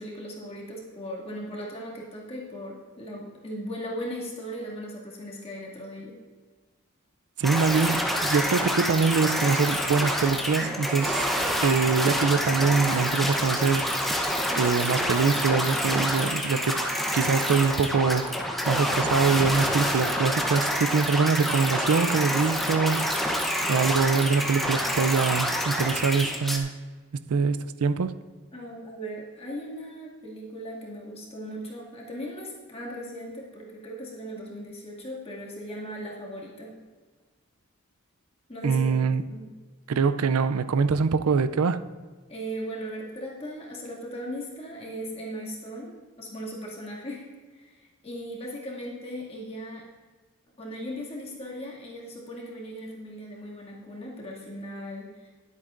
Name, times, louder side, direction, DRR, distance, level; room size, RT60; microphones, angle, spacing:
voice 1, 0.0-6.2 28.5-36.7 38.5-39.0 39.3-39.5 42.3-49.9 50.6-55.3, equal, 25° left, 2.2 m, -38 dB
sound 1, 7.4-26.6, equal, ahead, 0.8 m, -27 dB
voice 2, 7.4-11.3 11.6-13.9 14.6-16.8 17.1-18.3 18.7-23.1 23.7-26.7 27.1-28.1 38.6-39.2 39.9-41.8, right 5 dB, 85° right, 0.4 m, -24 dB
20.5 x 8.2 x 2.5 m
head